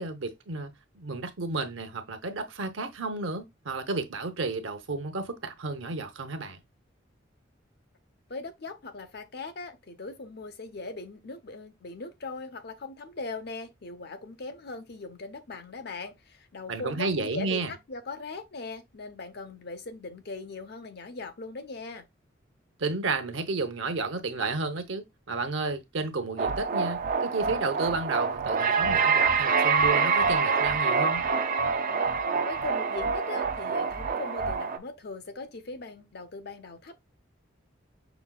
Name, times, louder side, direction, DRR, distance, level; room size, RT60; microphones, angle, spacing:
voice 1, 0.0-6.6 16.7-17.7 22.8-31.2, right 3 dB, 75° right, 0.8 m, -32 dB
voice 2, 8.3-22.0 32.5-37.0, left 3 dB, 55° left, 0.8 m, -40 dB
sound 1, 26.4-34.8, right 5 dB, 45° right, 0.4 m, -26 dB
6.1 x 3.2 x 2.3 m
head